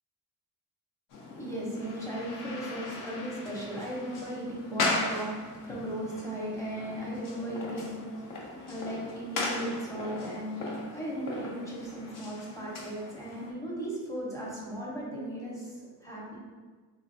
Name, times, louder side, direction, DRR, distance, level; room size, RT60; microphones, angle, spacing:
sound 1, 1.1-13.5, left 2 dB, 60° left, 0.7 m, -38 dB
voice 1, 1.3-16.4, equal, 10° left, -5 dB, 0.9 m, -37 dB
3.3 x 3.1 x 2.6 m, 1.4 s
cardioid pair, 120°, 37 cm